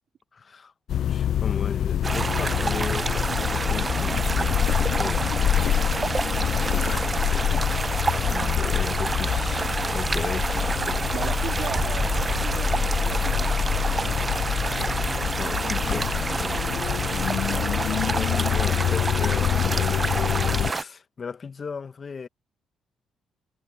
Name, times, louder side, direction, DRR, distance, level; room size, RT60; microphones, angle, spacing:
voice 1, 0.3-6.3 6.7-7.6 8.0-9.7 9.9-11.1 15.4-17.0 17.9-20.3 20.6-22.3, left 5 dB, 40° left, 1.3 m, -37 dB
sound 1, 0.9-20.7, left 10 dB, 65° left, 0.3 m, -26 dB
sound 2, 2.0-20.8, right 3 dB, 30° right, 0.6 m, -28 dB
voice 2, 11.1-14.3, right 8 dB, 65° right, 2.1 m, -38 dB
cardioid pair, 90°, 0 cm